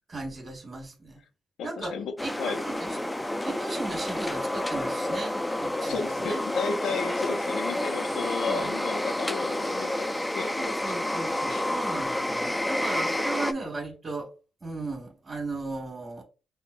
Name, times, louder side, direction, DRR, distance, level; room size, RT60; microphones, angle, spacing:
voice 1, 0.1-1.2 1.6-1.9 2.2-6.4 8.5-8.7 10.6-14.3 14.6-16.2, right 2 dB, 40° right, 1.4 m, -36 dB
voice 2, 1.6-2.6 5.8-10.5 11.5-11.7, left 5 dB, 85° left, 0.5 m, -33 dB
sound 1, 2.2-13.5, left 1 dB, 10° left, 0.3 m, -29 dB
5.5 x 2.1 x 2.5 m
cardioid pair, 95°, 0 cm